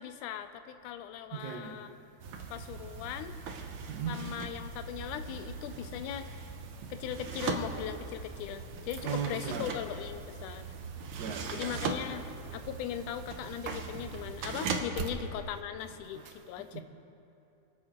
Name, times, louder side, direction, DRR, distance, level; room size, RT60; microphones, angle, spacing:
voice 1, 0.0-1.9 2.5-3.4 4.1-6.4 6.9-10.7 11.5-12.3 12.5-16.8, left 10 dB, 90° left, 9 dB, 2.1 m, -39 dB
voice 2, 1.3-1.8 3.9-4.2 8.9-9.7 11.1-11.8 15.0-15.1 16.1-16.8, right 7 dB, 60° right, 2 dB, 1.1 m, -37 dB
sound 1, 2.2-14.8, right 4 dB, 85° right, 1.1 m, -39 dB
27.0 x 9.2 x 3.0 m, 2.7 s
omnidirectional pair, 3.5 m